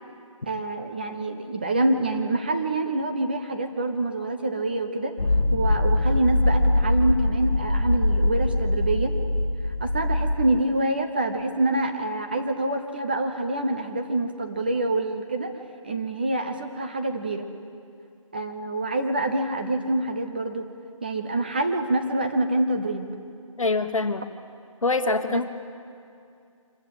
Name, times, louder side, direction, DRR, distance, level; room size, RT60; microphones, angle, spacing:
voice 1, 0.5-5.1 5.5-9.1 9.8-15.5 15.8-17.5 18.3-20.7 21.0-23.1 25.3-25.4, right 2 dB, 15° right, 5 dB, 0.6 m, -26 dB
sound 1, 5.2-10.4, left 1 dB, 85° left, 1.2 m, -22 dB
voice 2, 23.6-24.2 24.8-25.5, left 3 dB, 70° left, 9 dB, 1.4 m, -24 dB
25.0 x 14.5 x 7.7 m, 2.4 s
figure-of-eight pair, 165°, 18 cm